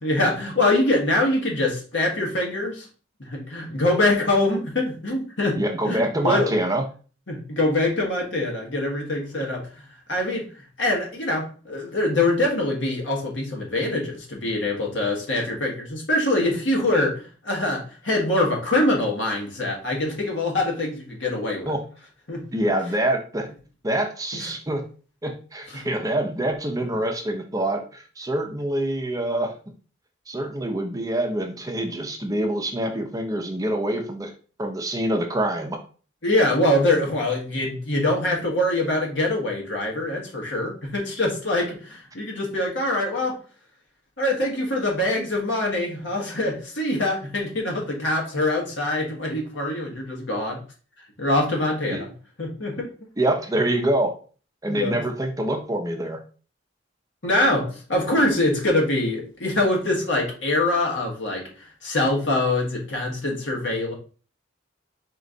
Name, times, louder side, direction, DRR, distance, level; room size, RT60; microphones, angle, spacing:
voice 1, 0.0-2.9 3.2-5.6 5.8-6.6 7.3-9.7 10.1-10.5 10.8-21.7 22.3-22.4 24.3-24.5 25.7-25.9 36.2-43.4 44.2-50.6 51.2-52.1 52.4-52.9 54.7-54.9 57.2-63.9, left 1 dB, 70° left, 0 dB, 1.6 m, -24 dB
voice 2, 5.6-6.9 21.7-21.8 22.5-23.5 23.8-24.8 25.2-29.5 30.3-34.3 34.6-35.8 51.9-52.0 53.2-54.1 54.6-56.2, right 1 dB, 20° right, 4 dB, 0.6 m, -25 dB
4.4 x 3.1 x 3.9 m, 0.38 s
head